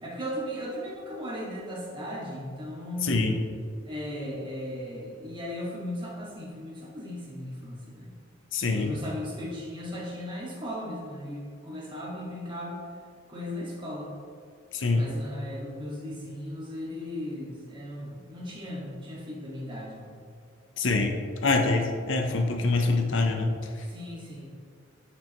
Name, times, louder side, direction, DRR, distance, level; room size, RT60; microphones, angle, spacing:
voice 1, 0.0-3.3 3.8-8.1 8.7-12.8 13.3-14.1 14.9-20.1 23.9-24.5, equal, 25° right, -5 dB, 1.8 m, -37 dB
voice 2, 3.0-3.4 8.5-8.9 14.7-15.1 20.8-23.5, left 3 dB, 75° left, 4 dB, 0.7 m, -25 dB
9.8 x 5.4 x 3.0 m, 2.2 s
head